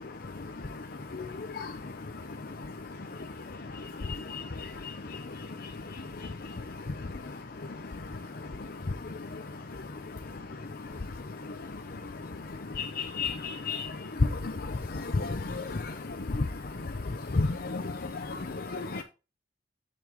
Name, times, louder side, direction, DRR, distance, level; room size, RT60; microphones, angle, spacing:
voice 1, 0.0-7.1 7.6-19.0, left 3 dB, 55° left, 0.7 m, -35 dB
8.9 x 7.0 x 3.0 m
head